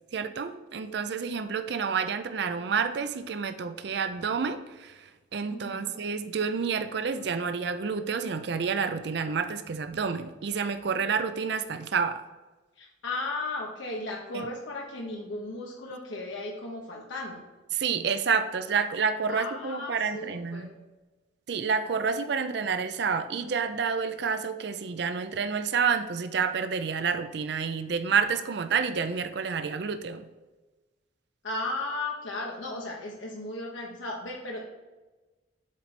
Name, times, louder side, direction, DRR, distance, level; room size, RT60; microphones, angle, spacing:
voice 1, 0.1-12.2 14.3-14.5 17.7-20.7 21.5-30.2, right 6 dB, 55° right, 10 dB, 0.4 m, -29 dB
voice 2, 5.5-6.0 12.8-17.4 19.3-20.7 31.4-34.6, left 2 dB, 75° left, -1 dB, 0.9 m, -35 dB
7.4 x 4.4 x 4.2 m, 1.2 s
head